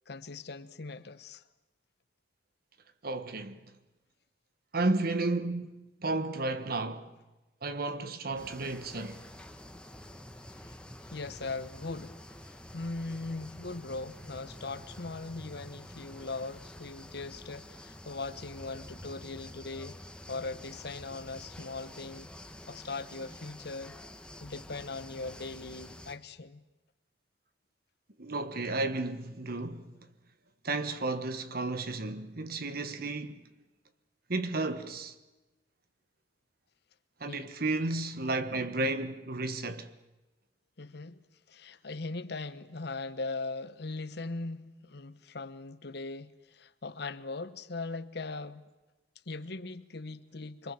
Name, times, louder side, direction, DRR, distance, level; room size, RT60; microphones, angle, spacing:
voice 1, 0.1-1.4 10.5-10.8 11.1-12.2 12.5-20.0 20.3-22.3 22.7-24.0 24.4-26.6 37.3-37.5 40.8-41.2 41.5-48.7 49.3-50.7, left 3 dB, 65° left, 1.0 m, -40 dB
voice 2, 3.0-3.6 4.7-7.1 7.6-9.2 28.2-29.9 30.6-33.6 34.3-35.1 37.2-39.9, right 2 dB, 55° right, 1.5 m, -33 dB
sound 1, 8.4-26.1, left 1 dB, 5° left, 1.3 m, -48 dB
25.5 x 24.0 x 7.5 m
head